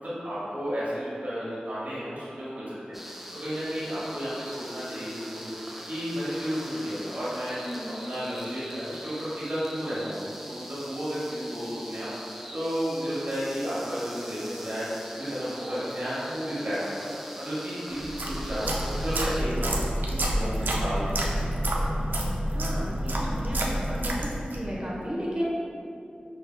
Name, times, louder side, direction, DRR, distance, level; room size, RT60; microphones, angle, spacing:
voice 1, 0.0-21.5, equal, 65° right, -11 dB, 1.5 m, -33 dB
sound 1, 2.9-19.4, equal, 5° right, 0.4 m, -42 dB
voice 2, 7.6-8.0 22.5-25.5, equal, 30° right, -5 dB, 1.1 m, -34 dB
sound 2, 18.0-24.7, right 1 dB, 90° right, 0.4 m, -28 dB
5.8 x 3.2 x 2.2 m, 2.6 s
cardioid pair, 45°, 3 cm